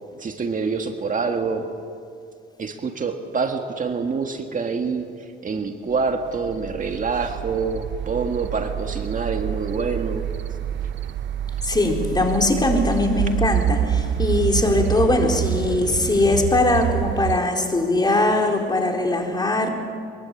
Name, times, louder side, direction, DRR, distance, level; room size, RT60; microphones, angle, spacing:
voice 1, 0.1-1.7 2.6-5.1 5.4-10.3, right 4 dB, 40° right, 5 dB, 1.8 m, -26 dB
sound 1, 6.1-17.4, right 10 dB, 65° right, 0.9 m, -27 dB
voice 2, 11.6-19.7, left 2 dB, 20° left, 2 dB, 4.2 m, -21 dB
23.5 x 22.5 x 8.5 m, 2.3 s
cardioid pair, 90°, 20 cm